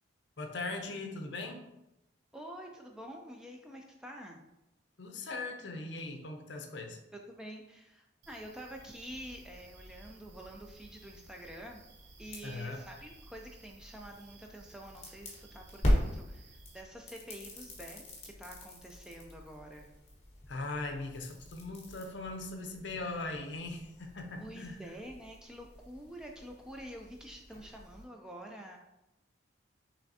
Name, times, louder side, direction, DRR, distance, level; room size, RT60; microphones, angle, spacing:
voice 1, 0.4-1.6 5.0-7.0 12.4-12.8 20.5-24.8, left 2 dB, 65° left, 4 dB, 0.6 m, -40 dB
voice 2, 2.3-4.4 7.1-11.9 12.2-19.9 24.4-28.8, equal, 5° right, 1 dB, 0.3 m, -47 dB
sound 1, 8.2-16.8, right 4 dB, 60° right, 0.5 m, -59 dB
sound 2, 8.7-28.0, equal, 30° left, 1.1 m, -40 dB
5.7 x 3.3 x 2.7 m, 0.93 s
head